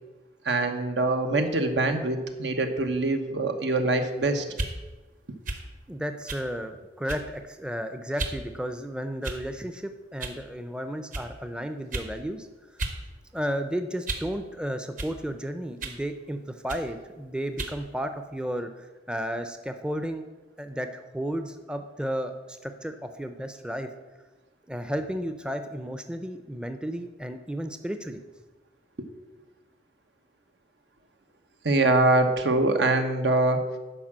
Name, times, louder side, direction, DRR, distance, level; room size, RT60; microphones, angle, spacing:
voice 1, 0.4-4.4 31.6-33.6, right 2 dB, 85° right, 6 dB, 1.1 m, -24 dB
sound 1, 4.5-4.8 5.4-5.7 6.3-6.5 7.1-7.4 8.2-8.4 9.2-9.6 10.2-10.4 11.1-11.3 11.9-12.1 12.8-13.0 13.3-14.3 15.0-15.2 15.8-16.0 16.7-16.9 17.6-17.8, right 2 dB, 45° right, 1.1 m, -34 dB
voice 2, 5.9-12.5 13.3-20.2 20.6-23.9 24.7-28.2, equal, 5° right, 8 dB, 0.5 m, -33 dB
11.0 x 4.8 x 7.4 m, 1.2 s
head